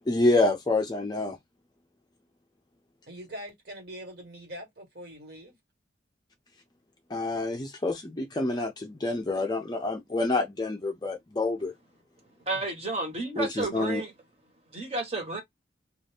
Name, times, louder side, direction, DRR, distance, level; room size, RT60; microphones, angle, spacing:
voice 1, 0.1-1.4 7.1-11.7 13.4-14.0, left 2 dB, 20° left, 0.4 m, -27 dB
voice 2, 3.1-5.6 12.4-12.6, equal, 55° right, 1.5 m, -43 dB
voice 3, 12.5-14.1 14.7-15.4, right 3 dB, 35° right, 1.1 m, -31 dB
2.6 x 2.3 x 3.4 m
head